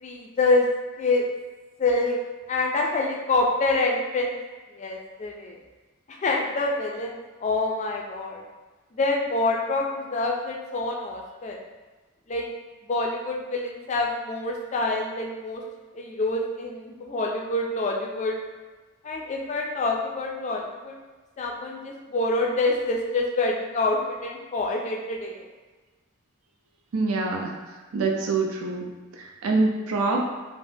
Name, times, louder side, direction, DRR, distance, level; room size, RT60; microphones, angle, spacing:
voice 1, 0.0-0.6 1.0-1.2 1.8-2.2 2.5-4.3 4.8-5.6 6.1-8.4 8.9-11.6 12.3-12.4 12.9-15.6 15.9-18.3 19.0-21.0 21.4-25.5, left 2 dB, 35° left, 0 dB, 0.3 m, -26 dB
voice 2, 26.9-27.5 27.9-28.9 29.4-30.3, right 3 dB, 80° right, 1 dB, 0.4 m, -24 dB
3.3 x 2.1 x 2.6 m, 1.3 s
head